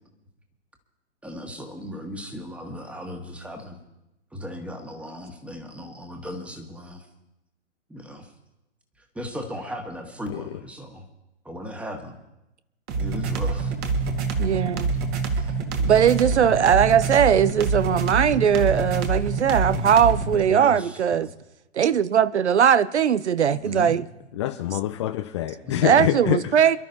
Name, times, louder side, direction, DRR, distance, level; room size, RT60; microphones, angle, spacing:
voice 1, 1.2-3.8 4.3-7.1 7.9-8.3 9.1-11.0 11.4-12.2 13.0-13.7 15.3-15.5 20.5-21.3 23.6-24.0 25.6-26.2, equal, 5° right, 1.6 m, -36 dB
sound 1, 12.9-20.4, right 4 dB, 25° right, 1.7 m, -26 dB
voice 2, 14.4-14.9 15.8-21.3 21.8-24.0 25.8-26.8, right 8 dB, 65° right, 0.6 m, -19 dB
voice 3, 24.4-26.4, left 13 dB, 25° left, 0.5 m, -25 dB
27.5 x 12.0 x 2.7 m
figure-of-eight pair, 115°, 37 cm